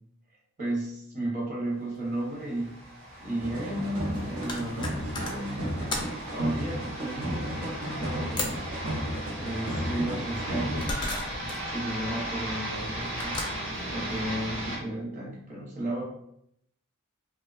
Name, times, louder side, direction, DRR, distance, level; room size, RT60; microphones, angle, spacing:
voice 1, 0.6-2.8 3.2-5.7 6.3-8.8 9.4-11.2 11.7-13.5 13.9-16.0, right 1 dB, 35° right, -4 dB, 0.8 m, -34 dB
sound 1, 2.0-2.1 2.3-2.4 3.5-6.3 8.3-8.8 10.3-11.6 12.6-14.3, left 2 dB, 20° left, 0.3 m, -37 dB
sound 2, 2.2-14.8, right 1 dB, 65° right, 1.0 m, -37 dB
sound 3, 3.4-10.9, equal, 90° right, 0.7 m, -34 dB
2.7 x 2.2 x 2.3 m, 0.74 s
head